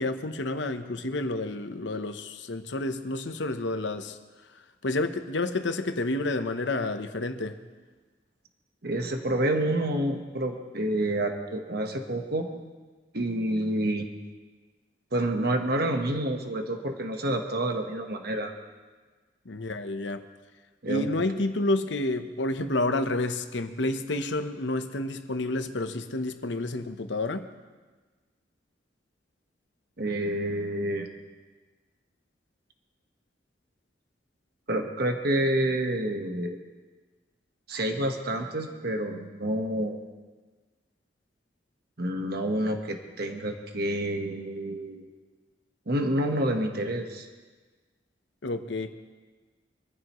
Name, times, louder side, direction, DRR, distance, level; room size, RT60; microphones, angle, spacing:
voice 1, 0.0-4.2 4.8-7.6 19.5-20.2 20.9-27.5 48.4-48.9, left 2 dB, 80° left, 8 dB, 1.0 m, -29 dB
voice 2, 8.8-12.5 13.1-14.1 15.1-18.5 20.8-21.1 30.0-31.1 34.7-36.6 37.7-40.0 42.0-45.0 45.9-47.3, right 1 dB, 60° right, 4 dB, 1.4 m, -28 dB
24.0 x 14.5 x 3.1 m, 1.3 s
head